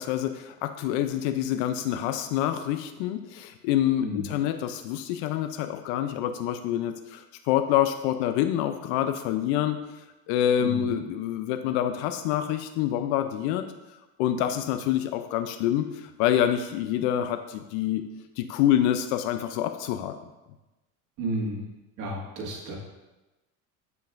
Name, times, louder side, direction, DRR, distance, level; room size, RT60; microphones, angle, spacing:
voice 1, 0.0-9.8 10.3-13.6 14.2-18.0 18.4-20.1, left 11 dB, 80° left, 8 dB, 0.5 m, -26 dB
voice 2, 10.6-10.9 21.2-21.6 22.0-22.8, right 1 dB, 55° right, -2 dB, 1.9 m, -32 dB
7.9 x 5.3 x 2.5 m, 1.0 s
cardioid pair, 130°, 35 cm